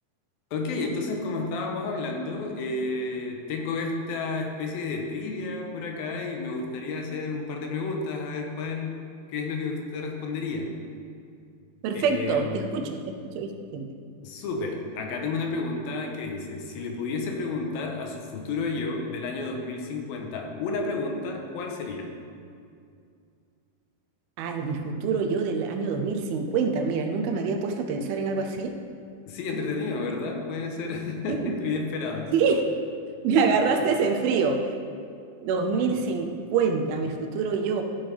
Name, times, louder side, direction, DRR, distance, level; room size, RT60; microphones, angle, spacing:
voice 1, 0.5-9.0 9.3-10.8 11.9-12.6 14.2-22.1 29.3-32.3 33.5-33.8 35.7-36.0, left 3 dB, 80° left, 2 dB, 2.6 m, -31 dB
voice 2, 11.8-13.0 13.4-13.9 24.4-28.7 31.3-31.5 32.3-32.6 33.2-34.7 35.4-37.8, right 5 dB, 80° right, 4 dB, 2.6 m, -25 dB
14.0 x 7.3 x 3.4 m, 2.3 s
omnidirectional pair, 4.4 m